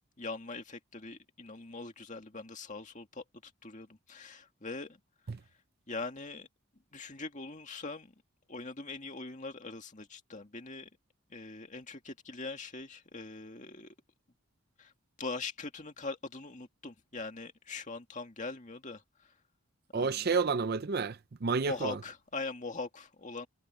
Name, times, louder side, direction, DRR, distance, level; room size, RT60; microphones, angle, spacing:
voice 1, 0.2-5.0 5.9-6.5 6.9-8.1 8.5-10.9 11.3-13.9 14.8-14.9 15.2-19.0 19.9-20.3 21.6-23.5, left 3 dB, 35° left, 2.2 m, -42 dB
voice 2, 19.9-22.0, right 4 dB, 45° right, 0.5 m, -30 dB
head